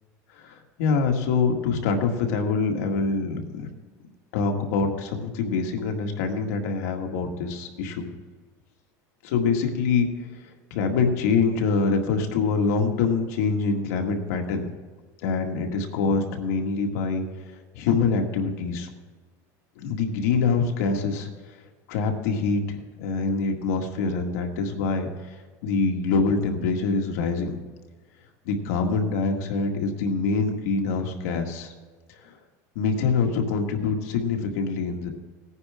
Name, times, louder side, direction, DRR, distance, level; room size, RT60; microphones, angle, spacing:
voice 1, 0.3-3.7 4.3-8.1 9.2-10.1 10.4-14.7 15.2-17.2 17.7-18.9 19.8-21.3 21.9-27.6 28.5-31.7 32.2-32.3 32.8-35.1, left 4 dB, 85° left, 3 dB, 1.9 m, -25 dB
18.5 x 9.6 x 3.7 m, 1.4 s
supercardioid pair, 135°, 8 cm